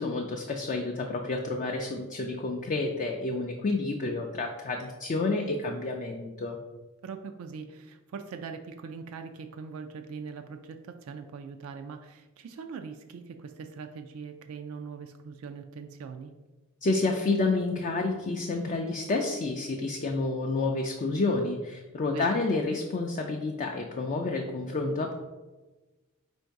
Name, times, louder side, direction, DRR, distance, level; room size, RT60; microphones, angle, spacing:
voice 1, 0.0-6.6 16.8-25.1, left 3 dB, 35° left, 2 dB, 0.4 m, -29 dB
voice 2, 7.0-16.3 22.1-22.4, right 5 dB, 70° right, 6 dB, 0.3 m, -41 dB
4.5 x 2.6 x 4.5 m, 1.2 s
head